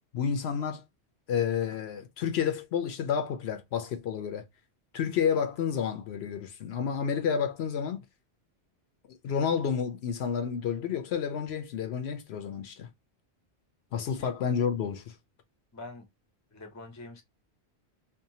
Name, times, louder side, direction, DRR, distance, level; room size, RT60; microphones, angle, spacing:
voice 1, 0.1-0.8 1.3-4.4 4.9-8.0 9.1-12.9 13.9-15.1, left 7 dB, 75° left, 0.8 m, -30 dB
voice 2, 15.7-16.1 16.5-17.2, left 2 dB, 20° left, 0.6 m, -45 dB
2.7 x 2.3 x 2.7 m
omnidirectional pair, 1.1 m